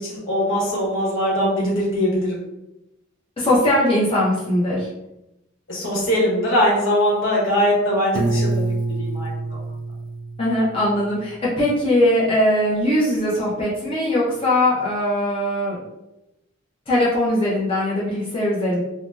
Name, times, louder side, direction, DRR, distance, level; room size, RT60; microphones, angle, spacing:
voice 1, 0.0-2.3 5.7-9.6, equal, 65° left, -5 dB, 1.1 m, -21 dB
voice 2, 3.4-4.9 10.4-15.8 16.9-18.8, left 1 dB, 25° left, -7 dB, 0.6 m, -20 dB
Piano, 8.1-11.1, right 2 dB, 85° right, 0.5 m, -26 dB
2.7 x 2.0 x 3.3 m, 0.91 s
head